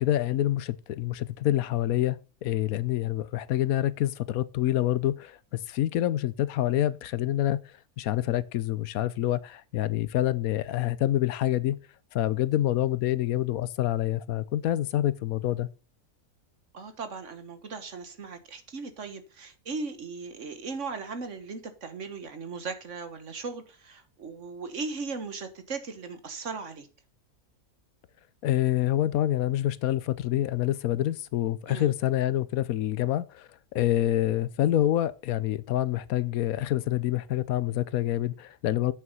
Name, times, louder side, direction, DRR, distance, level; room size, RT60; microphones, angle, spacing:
voice 1, 0.0-2.2 2.4-7.6 8.0-11.8 12.1-15.7 28.4-33.5 33.7-38.9, left 13 dB, 80° left, 1.1 m, -27 dB
voice 2, 16.7-26.9 31.7-31.9, right 4 dB, 55° right, 1.6 m, -38 dB
8.5 x 6.8 x 5.4 m
omnidirectional pair, 1.5 m